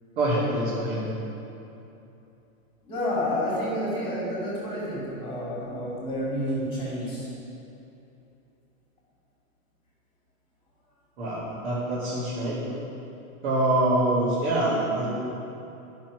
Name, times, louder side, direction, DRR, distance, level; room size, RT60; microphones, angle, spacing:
voice 1, 0.2-1.0 11.2-12.6 13.4-15.1, right 1 dB, 50° right, -10 dB, 2.6 m, -25 dB
voice 2, 2.8-7.3, equal, 10° left, -6 dB, 2.4 m, -29 dB
11.5 x 6.0 x 6.1 m, 2.9 s
supercardioid pair, 175°, 43 cm